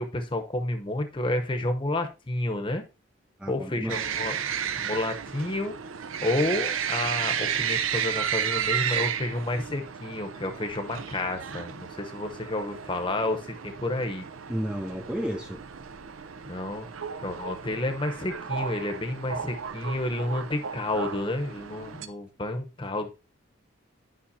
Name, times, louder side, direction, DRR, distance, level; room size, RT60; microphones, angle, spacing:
voice 1, 0.0-2.8 3.5-4.3 4.8-5.7 6.2-14.3 16.5-16.9 17.2-23.1, left 2 dB, 25° left, 0.9 m, -30 dB
voice 2, 3.4-4.0 14.5-15.6, equal, 5° right, 0.4 m, -32 dB
sound 1, 3.9-22.1, right 8 dB, 85° right, 0.6 m, -33 dB
10.0 x 5.7 x 2.7 m
head